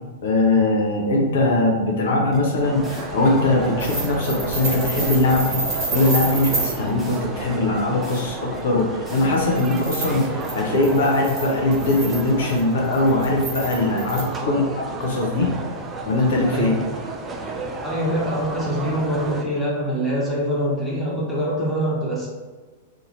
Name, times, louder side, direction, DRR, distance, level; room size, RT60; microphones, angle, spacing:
voice 1, 0.2-15.5 16.1-16.7, left 2 dB, 60° left, -1 dB, 0.6 m, -21 dB
sound 1, 2.3-10.3, right 1 dB, 20° left, 1.1 m, -42 dB
sound 2, 2.6-19.4, right 2 dB, 20° right, 0.4 m, -32 dB
sound 3, 3.8-6.8 9.2-14.2, right 3 dB, 35° right, 1.1 m, -29 dB
voice 2, 17.8-22.3, equal, 5° left, -7 dB, 1.1 m, -24 dB
2.7 x 2.6 x 4.0 m, 1.4 s
figure-of-eight pair, 100°, 0 cm